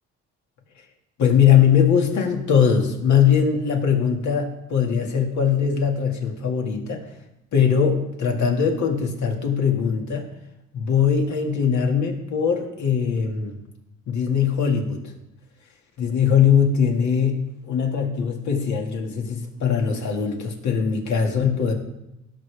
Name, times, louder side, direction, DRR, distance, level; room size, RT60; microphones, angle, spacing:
voice 1, 1.2-7.0 7.5-10.3 10.7-13.5 14.1-15.0 16.0-17.4 17.7-21.7, left 7 dB, 70° left, 2 dB, 2.0 m, -21 dB
16.5 x 6.7 x 3.4 m, 0.89 s
cardioid pair, 90°, 30 cm